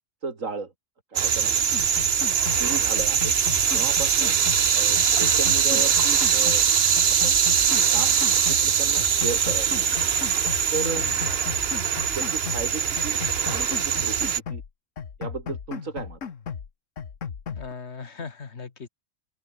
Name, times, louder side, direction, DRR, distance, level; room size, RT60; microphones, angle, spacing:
voice 1, 0.2-0.7 1.1-1.6 2.6-3.3 3.7-4.4 4.7-6.7 7.1-7.3 7.9-8.1 8.5-10.1 10.7-11.1 12.1-13.2 13.5-14.6 15.2-16.2, right 4 dB, 90° right, 3.0 m, -34 dB
sound 1, 1.2-14.4, right 7 dB, 55° right, 1.2 m, -22 dB
sound 2, 1.7-2.7 3.0-4.7 5.0-6.7 7.0-8.7 9.0-10.7 11.0-12.7 13.0-14.7 15.0-16.7 17.0-17.7, left 6 dB, 75° left, 1.8 m, -36 dB
voice 2, 10.8-11.2 17.5-18.9, left 5 dB, 60° left, 1.9 m, -37 dB
open air
omnidirectional pair, 1.3 m